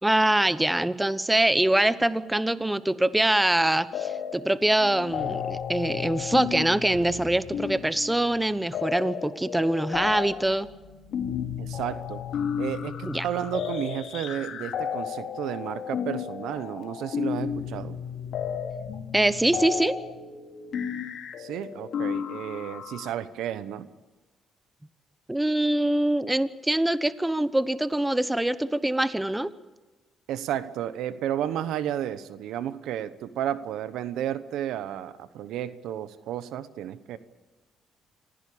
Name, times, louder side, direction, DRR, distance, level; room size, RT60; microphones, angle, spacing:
voice 1, 0.0-10.7 13.1-13.3 19.1-20.0 25.3-29.5, right 1 dB, 10° right, 14 dB, 1.0 m, -24 dB
sound 1, 3.9-4.6 4.8-23.1, left 7 dB, 70° left, 2.5 m, -33 dB
voice 2, 11.6-12.2 12.6-18.0 21.4-23.9 30.3-37.2, right 10 dB, 85° right, 14 dB, 1.1 m, -32 dB
25.5 x 16.0 x 8.7 m, 1.2 s
cardioid pair, 90°, 0 cm